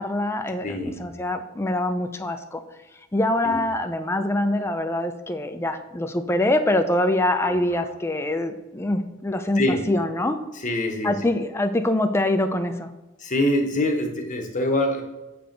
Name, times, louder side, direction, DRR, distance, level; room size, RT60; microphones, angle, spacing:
voice 1, 0.0-2.6 3.1-10.4 11.0-12.9, left 1 dB, 10° left, 8 dB, 0.4 m, -24 dB
voice 2, 0.6-1.0 3.4-3.6 7.5-7.8 9.6-9.8 10.5-11.2 13.2-15.0, left 1 dB, 40° left, 3 dB, 0.9 m, -25 dB
6.8 x 3.4 x 5.1 m, 1.0 s
head